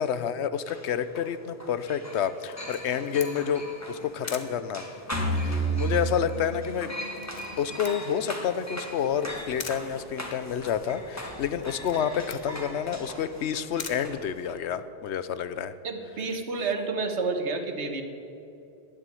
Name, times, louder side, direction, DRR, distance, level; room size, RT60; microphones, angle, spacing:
voice 1, 0.0-4.8 5.3-6.9 7.6-15.7, left 8 dB, 80° left, 13 dB, 1.0 m, -29 dB
sound 1, 0.6-14.5, left 1 dB, 15° left, 1.5 m, -40 dB
Camera, 2.4-14.9, left 5 dB, 45° left, 1.0 m, -46 dB
sound 2, 5.1-8.4, right 3 dB, 20° right, 2.5 m, -30 dB
voice 2, 15.8-18.0, right 4 dB, 85° right, 6 dB, 1.5 m, -30 dB
10.5 x 9.1 x 9.2 m, 2.8 s
omnidirectional pair, 1.1 m